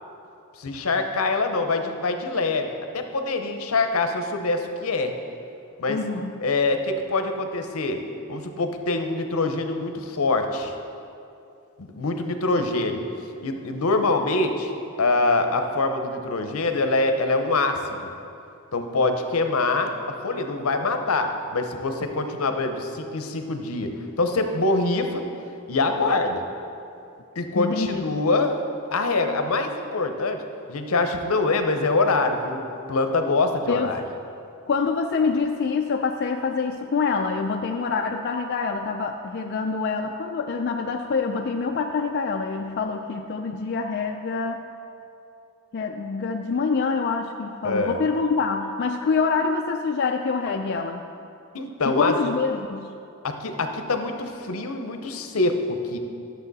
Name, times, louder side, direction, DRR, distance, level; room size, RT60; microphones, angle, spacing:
voice 1, 0.6-5.1 5.8-6.0 6.4-8.0 8.3-10.7 11.8-13.0 13.4-18.1 18.7-25.3 25.7-26.4 27.4-28.6 28.9-30.4 30.7-32.6 32.9-34.0 47.6-48.0 51.5-52.1 53.2-56.0, left 3 dB, 75° left, 6 dB, 0.8 m, -24 dB
voice 2, 5.9-6.4 27.5-28.0 33.7-33.9 34.7-44.6 45.7-51.0 51.8-52.9, left 4 dB, 50° left, 3 dB, 0.3 m, -26 dB
11.5 x 6.9 x 4.0 m, 2.6 s
head